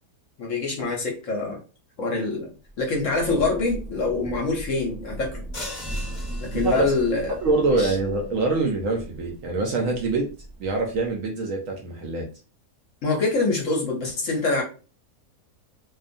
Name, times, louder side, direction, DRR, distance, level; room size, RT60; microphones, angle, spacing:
voice 1, 0.4-1.6 2.0-5.4 6.4-7.3 7.7-8.0 13.0-14.6, left 3 dB, 65° left, 0 dB, 0.9 m, -25 dB
Thunder / Rain, 2.7-11.3, right 1 dB, 5° right, 0.6 m, -38 dB
sound 1, 5.5-7.3, left 2 dB, 40° left, 0.5 m, -39 dB
voice 2, 6.5-6.9 7.4-10.3 10.6-12.2, right 3 dB, 70° right, 1 dB, 0.8 m, -24 dB
2.6 x 2.2 x 2.5 m, 0.36 s
omnidirectional pair, 1.7 m